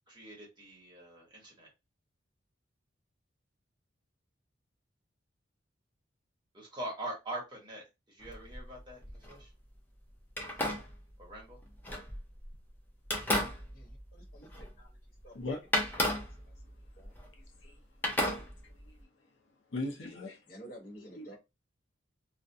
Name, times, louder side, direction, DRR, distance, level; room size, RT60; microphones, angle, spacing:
voice 1, 0.1-1.7 6.5-9.5 11.2-11.6, right 1 dB, 25° right, 1.0 m, -43 dB
sound 1, 8.2-9.4 10.3-12.6 13.0-14.9 15.2-15.3 15.7-17.7 18.0-19.0, left 1 dB, 10° left, 0.4 m, -35 dB
voice 2, 13.7-14.5 14.8-14.9 15.2-15.4 17.0-17.1 20.5-21.4, right 1 dB, 45° left, 1.1 m, -51 dB
voice 3, 18.3-19.0 19.7-20.4 21.0-21.4, left 2 dB, 70° left, 0.7 m, -40 dB
2.4 x 2.2 x 2.6 m
head